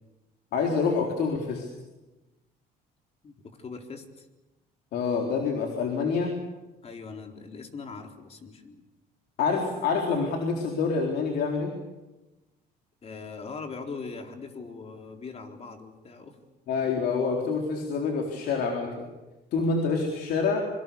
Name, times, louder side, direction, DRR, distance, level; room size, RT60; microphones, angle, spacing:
voice 1, 0.5-1.7 4.9-6.3 9.4-11.7 16.7-19.0 19.5-20.7, left 4 dB, 75° left, 1 dB, 3.9 m, -27 dB
voice 2, 3.2-4.3 6.8-8.8 13.0-16.4, left 4 dB, 35° left, 4 dB, 4.0 m, -41 dB
26.5 x 24.5 x 7.1 m, 1.1 s
cardioid pair, 110°, 17 cm